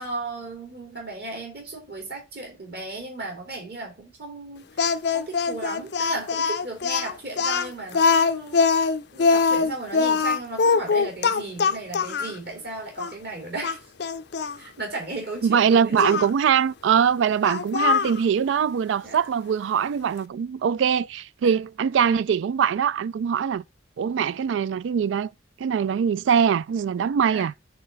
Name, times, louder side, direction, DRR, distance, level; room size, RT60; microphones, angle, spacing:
voice 1, 0.0-8.6 9.1-13.8 14.6-16.2 19.0-19.2 21.4-21.6 27.3-27.5, right 2 dB, 55° right, 2.6 m, -35 dB
Speech, 4.8-12.4 13.0-13.1 13.6-14.6 16.0-16.3 17.4-18.2, left 5 dB, 60° left, 0.5 m, -22 dB
voice 2, 15.4-23.6 24.0-25.3 25.6-27.6, right 7 dB, 80° right, 0.3 m, -22 dB
6.7 x 3.3 x 5.3 m
head